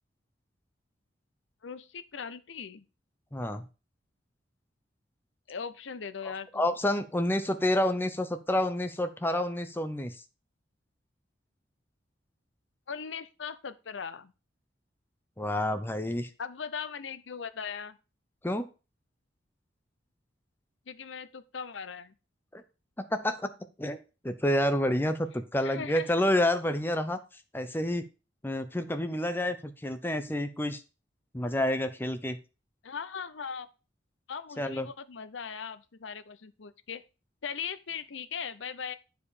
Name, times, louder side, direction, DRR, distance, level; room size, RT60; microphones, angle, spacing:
voice 1, 1.6-2.9 5.5-6.7 12.9-14.3 16.4-18.0 20.9-22.1 25.6-26.1 32.8-33.7 34.3-37.0 37.4-39.0, left 6 dB, 80° left, 13 dB, 0.7 m, -39 dB
voice 2, 3.3-3.6 6.5-10.1 15.4-16.3 18.4-18.7 22.5-22.6 23.0-23.5 23.8-24.0 24.2-27.2 27.5-28.0 28.4-30.8 31.3-32.4 34.6-34.9, left 1 dB, 10° left, 9 dB, 0.7 m, -29 dB
9.2 x 4.9 x 4.9 m, 0.32 s
head